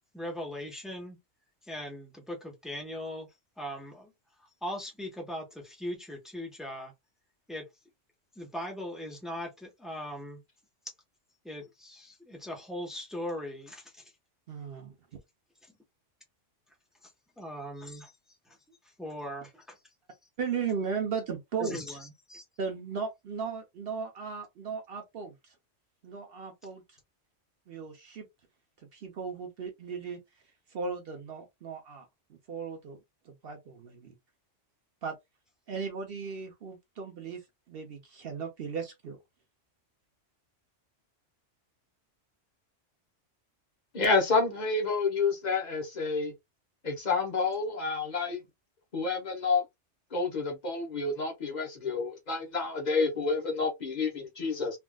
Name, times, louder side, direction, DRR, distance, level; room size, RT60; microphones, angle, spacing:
voice 1, 0.1-1.2 1.6-3.3 3.6-4.1 4.4-6.9 7.5-7.7 8.3-10.4 11.4-14.1 15.6-15.7 17.0-17.1 17.4-19.8 21.6-22.4, left 1 dB, ahead, 0.8 m, -40 dB
voice 2, 14.5-14.9 20.4-22.0 22.6-25.5 26.0-27.0 27.7-28.3 28.9-30.2 30.7-33.0 33.3-34.1 35.0-35.1 35.7-37.4 37.7-39.2, right 5 dB, 60° right, 0.8 m, -36 dB
voice 3, 43.9-46.3 46.8-48.4 48.9-49.6 50.1-54.8, left 4 dB, 40° left, 1.0 m, -29 dB
3.4 x 2.4 x 2.2 m
omnidirectional pair, 1.2 m